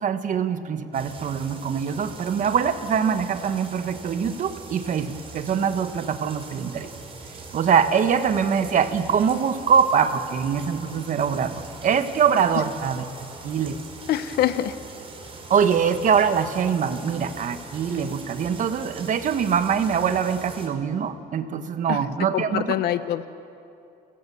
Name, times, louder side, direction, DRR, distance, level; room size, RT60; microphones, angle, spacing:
voice 1, 0.0-6.9 7.5-13.1 13.4-13.8 15.5-22.8, right 7 dB, 50° right, 9 dB, 1.4 m, -23 dB
sound 1, 0.9-20.7, right 3 dB, 35° right, 4.3 m, -42 dB
voice 2, 14.1-14.7 21.9-22.0 22.3-23.2, left 12 dB, 70° left, 12 dB, 0.9 m, -24 dB
29.5 x 17.0 x 7.1 m, 2.6 s
cardioid pair, 110°, 17 cm